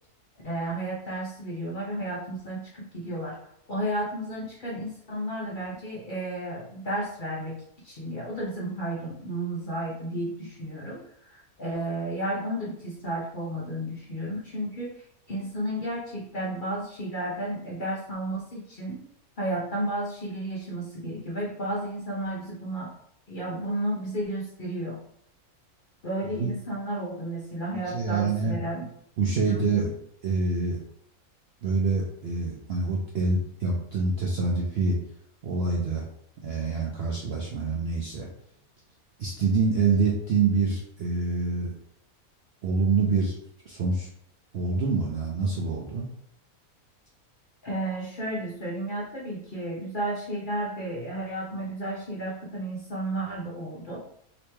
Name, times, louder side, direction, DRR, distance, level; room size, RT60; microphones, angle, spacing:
voice 1, 0.4-3.4 3.7-19.0 19.4-22.9 23.3-25.0 26.0-28.9 29.5-29.9 47.6-54.0, right 1 dB, 50° left, -5 dB, 0.6 m, -32 dB
voice 2, 27.9-28.6 29.2-29.9 30.2-30.8 31.6-35.0 35.4-36.1 36.4-38.3 39.2-41.7 42.6-43.3 43.7-44.1 44.5-46.1, right 4 dB, 65° right, -2 dB, 0.6 m, -26 dB
3.0 x 3.0 x 3.3 m, 0.72 s
omnidirectional pair, 1.6 m